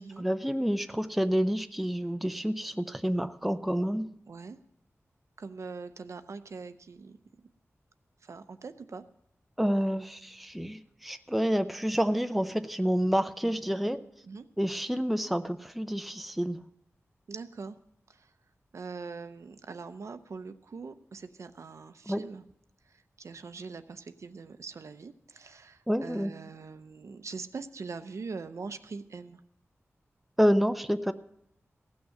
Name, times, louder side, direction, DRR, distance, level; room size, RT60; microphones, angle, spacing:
voice 1, 0.0-4.1 9.6-14.0 14.6-16.6 22.1-22.2 25.9-26.3 30.4-31.1, equal, ahead, 10 dB, 0.5 m, -28 dB
voice 2, 4.3-4.6 5.4-7.5 8.2-9.0 14.2-14.5 17.3-17.8 18.1-18.3 18.7-22.4 23.2-29.4, right 4 dB, 75° right, 10 dB, 0.7 m, -42 dB
16.0 x 6.4 x 7.1 m, 0.75 s
wide cardioid pair, 100°, 5 cm